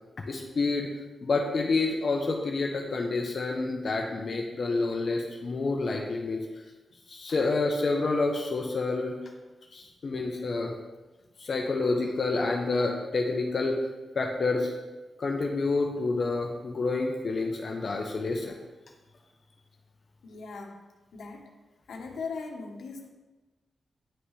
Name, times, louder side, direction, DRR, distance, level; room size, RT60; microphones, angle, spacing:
voice 1, 0.3-0.9 1.2-6.4 7.1-9.2 9.7-10.7 11.4-13.8 14.1-14.7 15.2-18.6, left 3 dB, 45° left, 1 dB, 0.7 m, -28 dB
voice 2, 20.2-20.8 21.1-21.5 21.9-23.1, left 4 dB, 80° left, 2 dB, 1.1 m, -39 dB
9.9 x 5.6 x 3.2 m, 1.2 s
wide cardioid pair, 170°, 0 cm